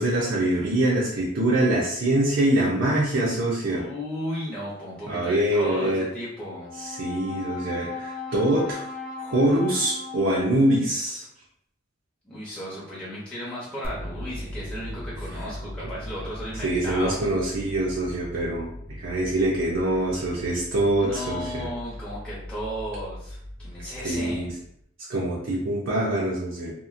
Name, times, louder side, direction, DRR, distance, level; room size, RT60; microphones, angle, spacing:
voice 1, 0.0-3.9 5.1-6.0 6.8-8.8 9.2-11.2 16.6-18.7 19.0-21.7 24.0-24.5 25.1-26.7, right 1 dB, 70° right, -6 dB, 0.6 m, -24 dB
voice 2, 3.6-6.7 12.2-17.2 20.7-24.5, equal, 5° left, -9 dB, 0.7 m, -35 dB
Brass instrument, 6.5-10.9, left 4 dB, 40° left, 0.9 m, -37 dB
sound 1, 13.8-24.8, equal, 30° right, 0.4 m, -39 dB
2.9 x 2.4 x 2.4 m, 0.71 s
head